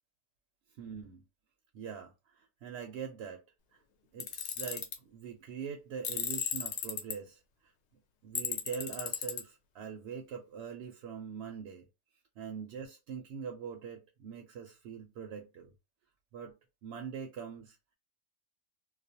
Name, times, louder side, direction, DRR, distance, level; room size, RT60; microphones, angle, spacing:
voice 1, 0.7-1.2 1.7-3.4 3.7-3.8 4.1-7.7 8.2-11.9 12.4-15.7 16.3-16.6 16.8-17.8, right 7 dB, 65° right, 0.7 m, -43 dB
Tools, 4.2-5.0 6.0-7.1 8.4-9.4, left 8 dB, 65° left, 0.8 m, -35 dB
2.3 x 2.1 x 2.7 m
omnidirectional pair, 1.4 m